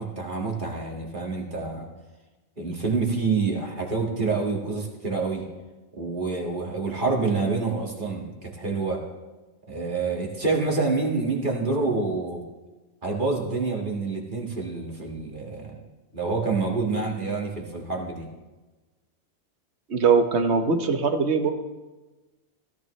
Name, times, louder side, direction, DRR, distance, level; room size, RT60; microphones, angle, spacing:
voice 1, 0.0-1.9 2.6-5.4 5.9-9.0 9.7-12.4 13.0-15.8 16.1-18.3, right 4 dB, 45° right, -1 dB, 2.1 m, -27 dB
voice 2, 19.9-21.5, right 5 dB, 70° right, 7 dB, 1.3 m, -21 dB
17.0 x 13.5 x 3.2 m, 1.2 s
omnidirectional pair, 1.2 m